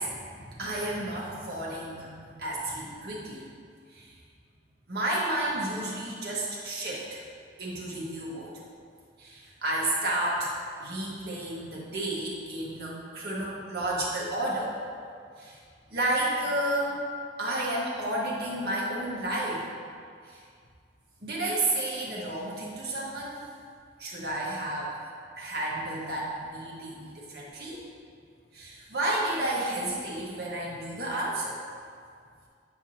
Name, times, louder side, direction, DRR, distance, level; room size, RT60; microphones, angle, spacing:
voice 1, 0.0-3.5 3.9-4.2 4.9-7.2 7.6-8.5 9.2-10.5 10.8-14.8 15.4-15.6 15.9-17.0 17.4-19.6 20.2-20.4 21.2-23.4 24.0-25.1 25.4-27.8 28.5-31.6, right 1 dB, 60° right, -5 dB, 1.4 m, -31 dB
8.9 x 4.8 x 2.8 m, 2.2 s
head